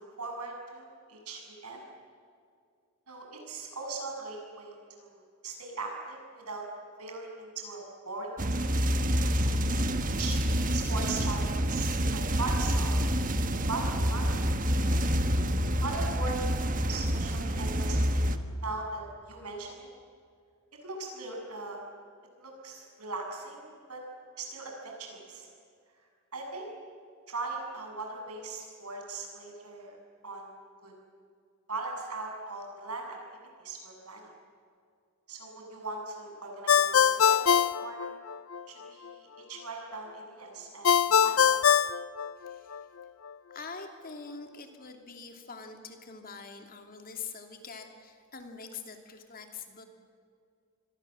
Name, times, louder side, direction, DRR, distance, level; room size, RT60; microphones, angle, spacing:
voice 1, 0.0-1.8 3.1-6.6 7.0-8.8 9.3-13.0 13.4-14.3 15.8-18.3 18.6-19.9 20.8-21.8 22.4-24.0 24.4-25.5 26.3-26.7 27.3-30.0 30.2-30.5 30.8-30.9 31.7-33.2 33.6-34.3 35.3-38.1 38.7-41.6, right 3 dB, 90° right, 1 dB, 7.6 m, -39 dB
sound 1, 8.4-18.4, equal, 35° right, 1.3 m, -28 dB
Ringtone, 36.7-38.6 40.8-42.8, left 8 dB, 70° left, 0.6 m, -23 dB
voice 2, 42.4-42.8 43.5-49.8, left 5 dB, 40° left, 5 dB, 2.9 m, -44 dB
27.5 x 22.0 x 7.8 m, 2.3 s
head